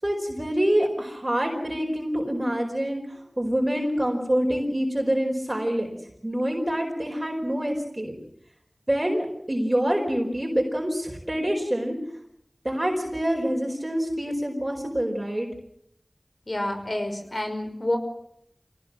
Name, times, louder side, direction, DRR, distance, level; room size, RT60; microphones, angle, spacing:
voice 1, 0.0-5.9 6.2-8.1 8.9-12.0 12.6-15.5, equal, 30° right, 1 dB, 4.8 m, -26 dB
voice 2, 16.5-18.0, left 1 dB, 50° left, 5 dB, 5.5 m, -28 dB
25.0 x 18.0 x 7.6 m, 0.72 s
wide cardioid pair, 50°, 0 cm